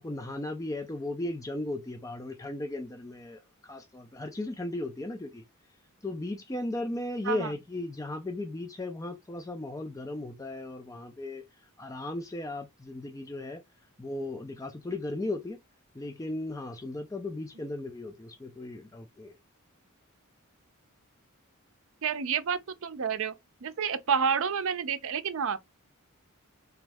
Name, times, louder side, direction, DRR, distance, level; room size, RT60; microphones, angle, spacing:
voice 1, 0.0-5.4 6.0-13.6 14.0-15.6 15.9-19.4, left 2 dB, 15° left, 0.4 m, -36 dB
voice 2, 22.0-23.3 23.6-25.6, right 6 dB, 65° right, 0.5 m, -29 dB
3.4 x 3.1 x 3.4 m
head